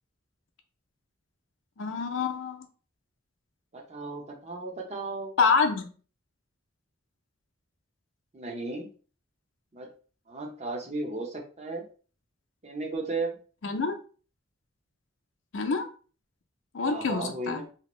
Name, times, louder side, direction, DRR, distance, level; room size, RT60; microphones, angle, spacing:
voice 1, 1.8-2.7 5.4-5.9 13.6-13.9 15.5-15.9 16.7-17.6, left 4 dB, 70° left, 5 dB, 0.5 m, -26 dB
voice 2, 3.7-5.3 8.3-8.9 9.7-9.9 10.3-11.9 12.6-13.3 16.9-17.7, right 2 dB, 35° right, 1 dB, 0.7 m, -35 dB
2.8 x 2.5 x 3.0 m, 0.39 s
head